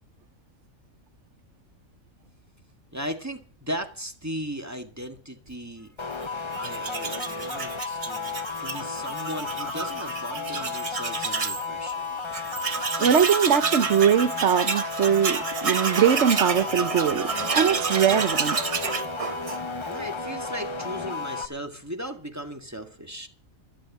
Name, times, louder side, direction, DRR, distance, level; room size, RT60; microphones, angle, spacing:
voice 1, 2.9-6.3 6.5-12.1 19.9-23.3, equal, 10° right, 1.8 m, -37 dB
sound 1, 6.0-21.5, left 4 dB, 25° left, 0.7 m, -33 dB
Tools, 6.5-11.6 12.0-12.1 12.3-19.9, right 5 dB, 35° right, 0.7 m, -30 dB
voice 2, 13.0-18.6, right 8 dB, 60° right, 1.1 m, -22 dB
12.5 x 11.5 x 7.4 m
omnidirectional pair, 1.4 m